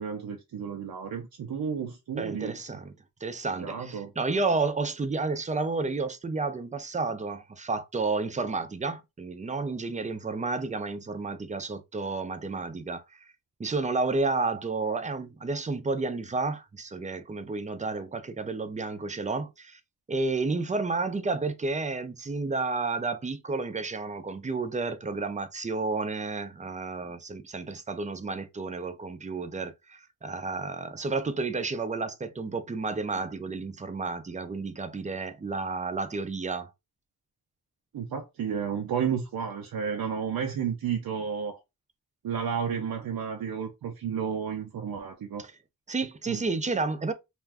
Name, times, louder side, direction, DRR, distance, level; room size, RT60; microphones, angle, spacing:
voice 1, 0.0-2.6 3.6-4.1 37.9-41.6 42.2-45.5 46.3-46.4, right 7 dB, 85° right, 0.5 m, -32 dB
voice 2, 2.2-2.9 3.2-13.3 13.6-19.8 20.1-36.7 45.4-45.5 45.9-47.1, right 3 dB, 20° right, 0.4 m, -31 dB
2.4 x 2.3 x 3.3 m
wide cardioid pair, 110°, 35 cm